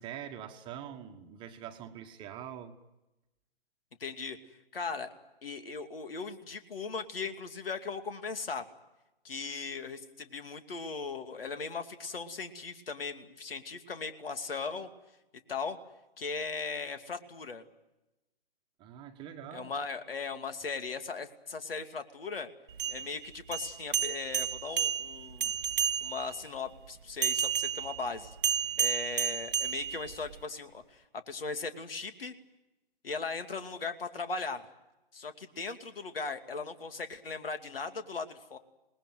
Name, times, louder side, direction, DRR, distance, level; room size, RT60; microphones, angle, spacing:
voice 1, 0.0-2.8 18.8-19.7, right 9 dB, 15° right, 4 dB, 1.5 m, -44 dB
voice 2, 4.0-4.4 4.7-5.1 5.4-8.6 9.2-14.9 15.5-15.8 16.2-17.6 19.5-22.5 22.9-25.5 26.0-28.4 28.8-32.3 33.0-34.6 35.1-38.6, left 4 dB, 70° left, 9 dB, 2.7 m, -38 dB
sound 1, 22.7-26.4 27.2-30.4, right 8 dB, 55° right, 1.1 m, -32 dB
27.0 x 20.0 x 9.3 m, 0.99 s
figure-of-eight pair, 140°, 30 cm